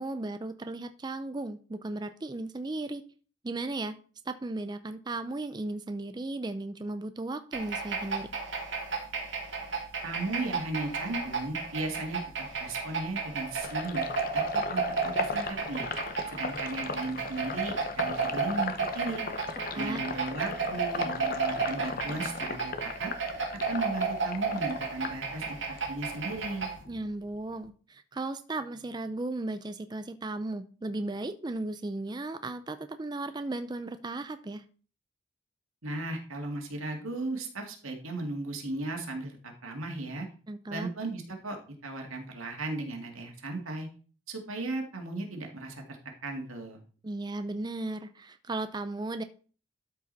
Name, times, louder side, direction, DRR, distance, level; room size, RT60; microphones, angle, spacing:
voice 1, 0.0-3.0 3.4-4.0 4.3-8.3 19.7-20.0 26.9-34.6 40.5-40.9 47.0-49.2, right 2 dB, 20° right, 10 dB, 0.4 m, -35 dB
sound 1, 7.5-26.8, right 4 dB, 60° right, 2.2 m, -33 dB
voice 2, 10.0-14.1 14.3-15.9 16.3-19.2 19.7-23.1 23.7-26.7 35.8-40.3 40.7-43.9 44.3-45.8 46.2-46.8, right 2 dB, 90° right, 2 dB, 2.2 m, -36 dB
Sink (filling or washing), 13.6-25.9 26.2-27.7, left 4 dB, 45° left, 0.8 m, -38 dB
12.5 x 4.9 x 4.1 m, 0.40 s
head